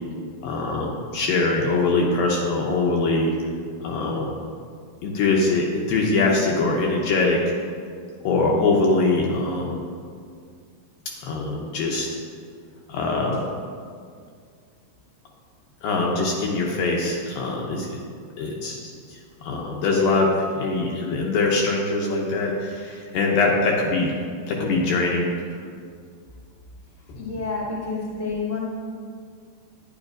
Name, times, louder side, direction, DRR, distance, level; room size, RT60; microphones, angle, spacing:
voice 1, 0.4-3.3 3.8-4.3 5.0-7.4 8.2-9.9 11.2-12.1 12.9-13.5 15.8-17.9 18.4-24.1 24.5-25.3 27.1-27.2, left 3 dB, 75° left, -1 dB, 2.2 m, -23 dB
voice 2, 27.1-28.6, left 4 dB, 15° left, -6 dB, 0.6 m, -29 dB
11.5 x 9.8 x 2.5 m, 2.1 s
omnidirectional pair, 4.7 m